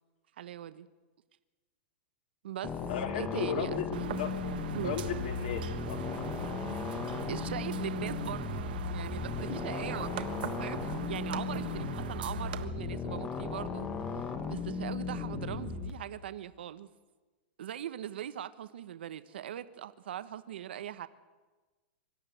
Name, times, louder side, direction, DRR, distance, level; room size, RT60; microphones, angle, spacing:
voice 1, 0.4-0.9 2.4-2.8 3.1-4.2 4.7-5.0 7.3-8.6 8.9-16.9 17.6-21.1, right 11 dB, 75° right, 13 dB, 1.0 m, -40 dB
sound 1, 2.6-15.9, left 5 dB, 15° left, 1.2 m, -36 dB
voice 2, 2.9-4.3 4.8-6.2, left 8 dB, 55° left, 5 dB, 3.1 m, -35 dB
sound 2, 3.9-12.7, right 10 dB, 60° right, 1.5 m, -41 dB
24.5 x 13.5 x 9.3 m, 1.3 s
supercardioid pair, 175°, 6 cm